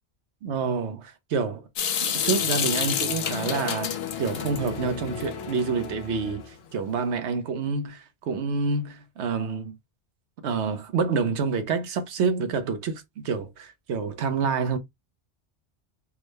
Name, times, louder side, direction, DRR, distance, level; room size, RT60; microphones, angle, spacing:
voice 1, 0.4-1.7 2.0-9.8 10.4-14.8, right 5 dB, 80° right, 1.0 m, -28 dB
Water tap faucet / Sink (filling or washing) / Drip, 1.8-5.9, left 8 dB, 70° left, 0.8 m, -29 dB
sound 1, 2.1-6.7, left 6 dB, 35° left, 0.6 m, -37 dB
3.6 x 2.1 x 3.1 m
omnidirectional pair, 1.1 m